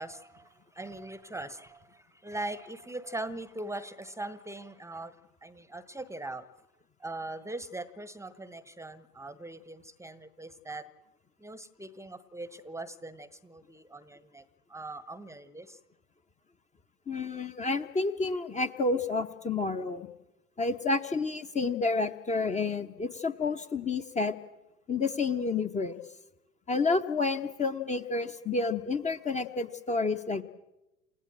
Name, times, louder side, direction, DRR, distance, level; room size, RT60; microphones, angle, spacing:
voice 1, 0.0-5.2 5.4-6.5 7.0-10.9 11.4-15.8, right 2 dB, 5° right, 16 dB, 1.1 m, -41 dB
voice 2, 17.1-20.1 20.6-24.4 24.9-26.0 26.7-30.4, left 3 dB, 15° left, 7 dB, 1.0 m, -30 dB
28.5 x 16.0 x 7.6 m, 0.95 s
figure-of-eight pair, 85°, 45 cm